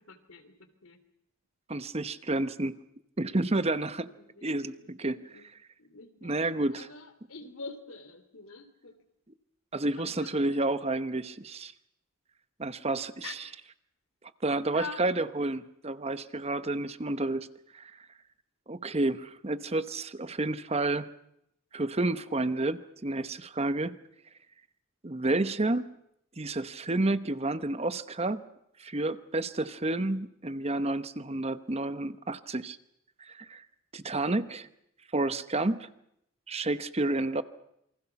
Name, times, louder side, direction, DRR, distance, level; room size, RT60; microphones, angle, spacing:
voice 1, 0.1-0.5 0.8-1.0 4.2-4.9 5.3-5.4 5.8-6.5 6.7-8.9 9.9-10.6 13.2-13.3 14.7-15.0, left 4 dB, 80° left, 10 dB, 3.1 m, -45 dB
voice 2, 1.7-2.8 3.2-4.1 4.4-5.4 6.2-6.9 9.7-11.7 12.6-13.5 14.4-17.5 17.7-17.9 18.7-21.1 21.7-23.9 25.0-25.9 26.4-28.4 28.8-32.8 33.2-33.6 33.9-34.7 35.1-35.9 36.5-37.4, right 2 dB, 30° right, 12 dB, 1.0 m, -30 dB
28.0 x 24.5 x 5.9 m, 0.77 s
head